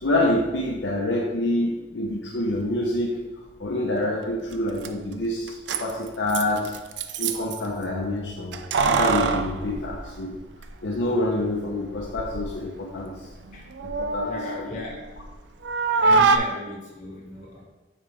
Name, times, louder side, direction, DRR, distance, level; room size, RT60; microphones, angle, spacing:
voice 1, 0.0-3.2 3.6-6.7 7.2-8.5 8.8-10.4 10.8-13.1 13.8-14.7, left 1 dB, 85° left, -1 dB, 0.9 m, -26 dB
Keys jangling, 4.5-4.6 4.8-4.9 5.5-7.6 8.5-10.7 11.0-11.1 11.9-12.5 12.9-15.3 15.6-16.4, right 4 dB, 80° right, 0.5 m, -25 dB
voice 2, 14.2-15.1 15.9-17.6, left 1 dB, 40° left, -3 dB, 1.7 m, -36 dB
7.3 x 5.1 x 3.5 m, 1.2 s
head